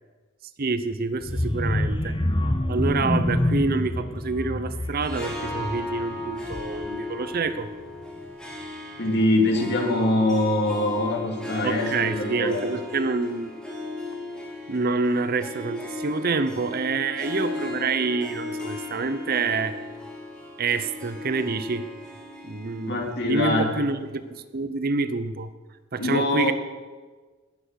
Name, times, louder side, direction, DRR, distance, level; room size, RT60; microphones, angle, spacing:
voice 1, 0.6-2.2 2.7-7.7 11.6-13.5 14.7-19.8 20.6-21.9 22.4-23.0 23.2-25.5 25.9-26.5, right 4 dB, 50° right, 12 dB, 0.7 m, -27 dB
sound 1, 1.2-7.0 7.4-7.6 7.9-8.0, left 1 dB, 25° left, 0.9 m, -27 dB
Harp, 4.9-24.3, left 2 dB, 5° left, 2.7 m, -36 dB
voice 2, 9.0-12.7 22.9-23.7 26.0-26.5, left 1 dB, 55° left, 1 dB, 2.6 m, -23 dB
19.0 x 8.0 x 6.5 m, 1.4 s
head